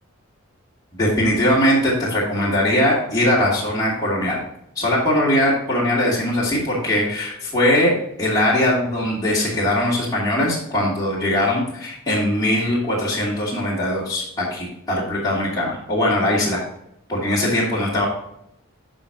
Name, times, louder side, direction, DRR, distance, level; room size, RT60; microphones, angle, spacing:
voice 1, 1.0-4.4 4.8-7.9 8.2-16.6 17.1-18.1, left 1 dB, 15° left, -7 dB, 2.6 m, -20 dB
12.0 x 5.2 x 2.8 m, 0.74 s
head